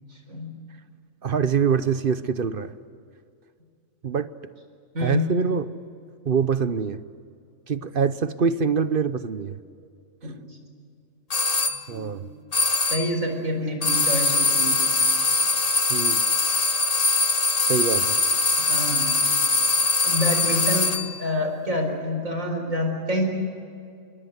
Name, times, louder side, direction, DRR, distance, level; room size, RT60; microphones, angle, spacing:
voice 1, 1.2-2.7 4.0-4.3 5.0-5.7 6.2-7.0 7.7-9.6 11.9-12.2 15.9-16.2 17.7-18.2, right 6 dB, 45° right, 13 dB, 0.9 m, -24 dB
voice 2, 4.9-5.3 10.2-10.3 11.9-12.2 12.9-14.8 18.6-19.1 20.0-23.2, left 1 dB, 70° right, 4 dB, 4.9 m, -27 dB
sound 1, 11.3-11.8 12.5-13.2 13.8-21.2, left 3 dB, 30° left, 1.0 m, -22 dB
27.5 x 22.5 x 8.1 m, 2.4 s
omnidirectional pair, 1.4 m